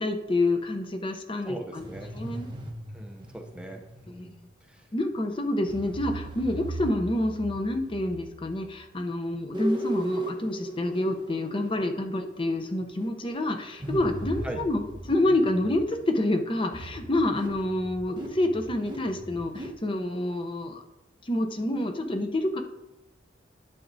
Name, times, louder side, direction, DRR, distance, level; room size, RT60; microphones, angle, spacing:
voice 1, 0.0-2.5 4.1-4.3 4.9-20.8 21.2-22.6, left 1 dB, 30° left, 6 dB, 0.7 m, -28 dB
voice 2, 1.4-2.1 2.9-4.8 14.4-14.6, right 1 dB, 5° right, 2 dB, 0.6 m, -41 dB
sound 1, 1.8-4.4 5.7-8.9 9.5-16.0 16.7-19.7, right 1 dB, 25° right, 1.1 m, -38 dB
11.0 x 7.4 x 2.7 m, 0.96 s
head